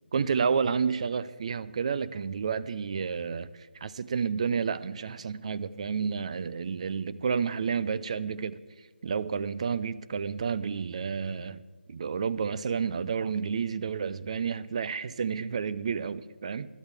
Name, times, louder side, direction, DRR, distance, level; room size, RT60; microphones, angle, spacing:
voice 1, 0.1-3.5 3.8-8.6 9.0-11.6 11.9-16.7, right 6 dB, 35° right, 0.5 m, -30 dB
25.5 x 12.5 x 3.4 m
figure-of-eight pair, 165°, 6 cm